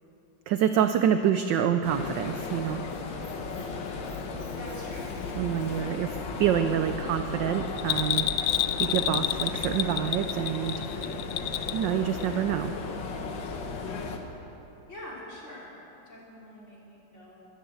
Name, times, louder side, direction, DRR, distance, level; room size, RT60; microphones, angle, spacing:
voice 1, 0.5-2.8 5.4-8.3 8.8-10.8 11.7-12.7, right 9 dB, 75° right, 9 dB, 1.0 m, -27 dB
sound 1, 1.8-14.2, left 4 dB, 60° left, 1.6 m, -35 dB
Squeak, 2.0-6.0, equal, 15° left, 3.0 m, -56 dB
voice 2, 4.6-5.1 14.9-17.4, left 1 dB, 30° left, -5 dB, 3.4 m, -45 dB
Bell, 7.8-11.9 12.2-12.3, left 13 dB, 80° left, 1.4 m, -29 dB
13.5 x 11.0 x 7.8 m, 3.0 s
omnidirectional pair, 2.4 m